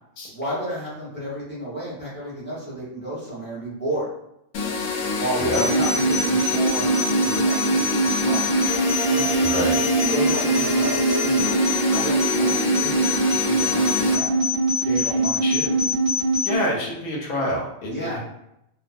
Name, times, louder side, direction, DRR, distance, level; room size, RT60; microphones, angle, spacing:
voice 1, 0.3-4.1 5.2-6.9 7.2-8.4 9.1-9.3 10.1-11.4 11.9-14.3 14.8-15.8 17.9-18.2, right 1 dB, 10° left, -9 dB, 0.9 m, -32 dB
sound 1, 4.5-14.2, left 3 dB, 65° left, 0.8 m, -26 dB
sound 2, 5.5-16.5, right 2 dB, 45° right, 1.1 m, -22 dB
voice 2, 9.4-9.8 15.4-15.6 16.4-18.2, left 1 dB, 90° left, -2 dB, 1.3 m, -27 dB
2.9 x 2.0 x 2.5 m, 0.81 s
omnidirectional pair, 1.5 m